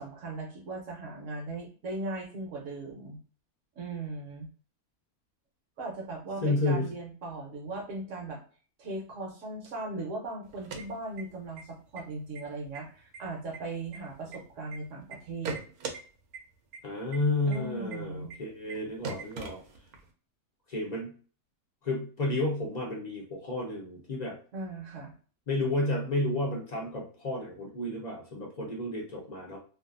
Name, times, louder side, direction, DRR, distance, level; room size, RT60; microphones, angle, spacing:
voice 1, 0.0-3.2 3.8-4.5 5.8-8.4 8.8-15.6 17.4-18.3 24.5-25.1, right 2 dB, 65° right, 1 dB, 1.0 m, -38 dB
voice 2, 6.4-6.9 16.8-19.6 20.7-21.1 21.8-24.4 25.5-29.6, left 2 dB, 50° left, -2 dB, 0.5 m, -31 dB
sound 1, 10.5-11.6 11.9-12.0 12.3-12.8 13.1-14.8 15.1-16.0 16.3-16.4 16.7-16.8 17.1-17.2 17.5-17.6 17.9-18.0 18.3-18.4 18.7-18.8 19.0-20.1, right 4 dB, 90° right, 1.1 m, -39 dB
2.6 x 2.4 x 2.4 m, 0.40 s
omnidirectional pair, 1.5 m